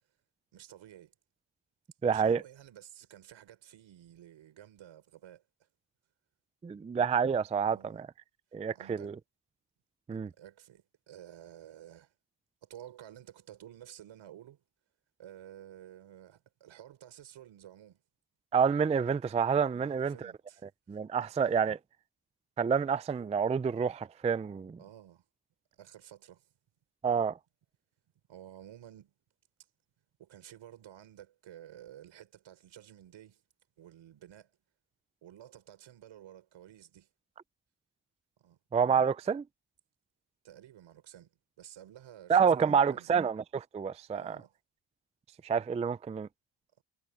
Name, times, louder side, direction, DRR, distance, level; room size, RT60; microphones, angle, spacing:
voice 1, 0.5-1.1 2.0-5.4 7.6-8.0 8.7-9.1 10.1-12.1 12.6-14.6 15.2-18.0 19.7-20.7 20.9-21.0 21.4-21.7 24.8-25.3 25.7-26.5 28.3-29.1 30.2-33.4 33.8-34.5 35.2-37.1 38.4-38.6 40.4-43.1 44.1-44.6, right 11 dB, 75° right, 5.5 m, -52 dB
voice 2, 2.0-2.4 6.6-8.1 8.5-9.2 10.1-10.3 18.5-20.3 20.9-21.8 22.6-24.8 27.0-27.3 38.7-39.4 42.3-44.4 45.4-46.3, right 6 dB, 15° right, 0.3 m, -28 dB
cardioid pair, 95°, 46 cm